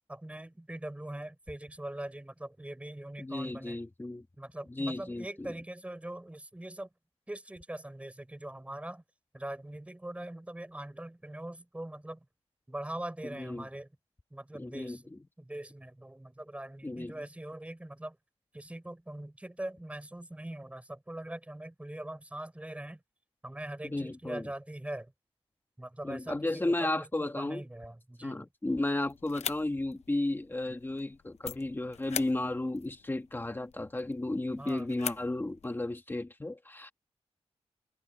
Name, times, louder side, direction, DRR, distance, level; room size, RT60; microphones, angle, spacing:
voice 1, 0.1-3.8 4.4-6.9 7.3-9.0 9.3-12.2 12.7-13.9 14.3-15.1 15.4-18.2 18.5-23.0 23.4-25.1 25.8-28.5 34.6-34.9, right 1 dB, 10° right, 5.0 m, -42 dB
voice 2, 3.2-4.2 4.7-5.5 13.3-13.7 14.5-15.2 16.8-17.3 23.8-24.5 26.0-27.6 28.2-36.9, left 2 dB, 20° left, 1.7 m, -34 dB
sound 1, 29.0-35.7, left 8 dB, 90° left, 0.7 m, -43 dB
wide cardioid pair, 110°, 11 cm